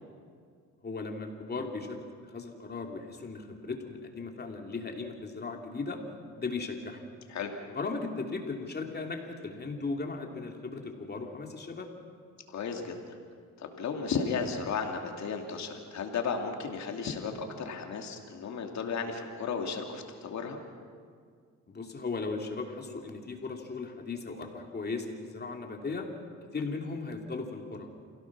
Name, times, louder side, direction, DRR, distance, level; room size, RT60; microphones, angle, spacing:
voice 1, 0.8-2.0 2.3-6.0 6.4-7.0 7.7-11.9 21.7-26.1 26.5-27.9, left 3 dB, 35° left, 2 dB, 3.0 m, -37 dB
voice 2, 12.5-13.1 13.6-20.6, left 5 dB, 65° left, 3 dB, 2.7 m, -34 dB
28.0 x 17.0 x 6.2 m, 2.1 s
cardioid pair, 90°, 30 cm